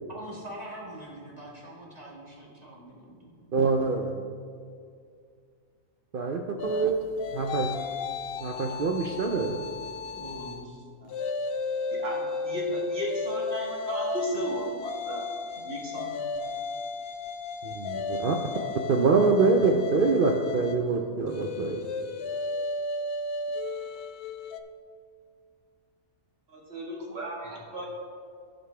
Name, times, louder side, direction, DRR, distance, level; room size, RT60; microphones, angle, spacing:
voice 1, 0.1-3.3 10.1-10.8 27.4-27.6, right 1 dB, 30° right, -4 dB, 1.7 m, -43 dB
voice 2, 3.5-4.2 6.1-7.0 7.3-7.7 8.4-9.6 17.6-18.4 18.9-21.8, right 4 dB, 65° right, 3 dB, 0.5 m, -25 dB
sound 1, 6.6-10.6 11.0-24.6, left 3 dB, 65° left, 0.6 m, -34 dB
voice 3, 11.9-15.3 15.6-16.2 26.5-27.9, right 1 dB, 45° right, -3 dB, 1.9 m, -35 dB
15.5 x 5.3 x 3.3 m, 2.2 s
omnidirectional pair, 1.5 m